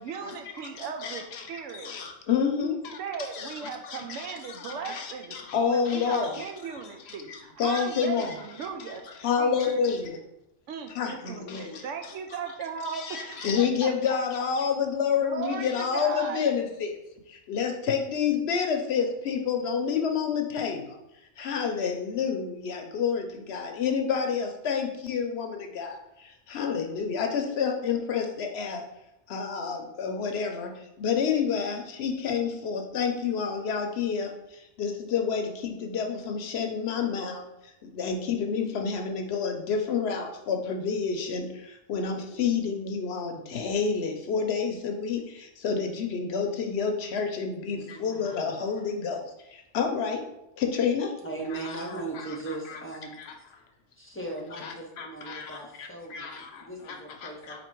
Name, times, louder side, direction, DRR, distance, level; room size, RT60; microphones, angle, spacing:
voice 1, 0.0-1.9 2.6-5.4 5.6-9.0 9.4-9.8 10.7-14.2 15.2-16.4, right 6 dB, 90° right, 5 dB, 0.9 m, -37 dB
voice 2, 0.7-8.7 9.1-10.2 10.9-12.4 12.9-17.0 17.3-21.0 21.4-28.8 29.3-50.3 50.6-51.2 51.5-52.8 53.2-53.3 54.5-57.6, left 6 dB, 65° left, 4 dB, 0.8 m, -29 dB
voice 3, 47.7-48.2 51.2-53.2 54.0-57.6, right 3 dB, 15° left, -1 dB, 0.6 m, -38 dB
4.2 x 2.8 x 4.4 m, 0.86 s
omnidirectional pair, 1.2 m